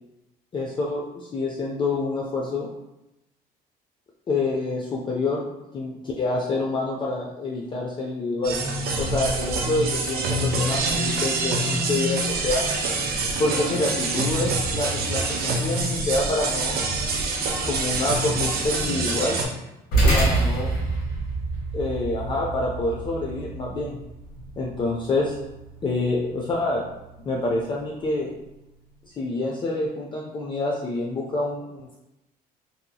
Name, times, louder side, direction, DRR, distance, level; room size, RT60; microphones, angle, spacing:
voice 1, 0.5-2.7 4.3-8.6 9.0-12.6 13.4-16.8 17.6-19.4 20.1-20.7 21.7-24.0 24.6-25.4 25.8-26.8 27.3-28.3 29.1-32.0, left 2 dB, 30° left, -2 dB, 0.4 m, -27 dB
sound 1, 8.4-19.4, right 2 dB, 65° right, 0.5 m, -26 dB
sound 2, 19.9-28.6, right 2 dB, 65° left, 1.3 m, -28 dB
2.7 x 2.6 x 2.2 m, 0.92 s
cardioid pair, 110°, 17 cm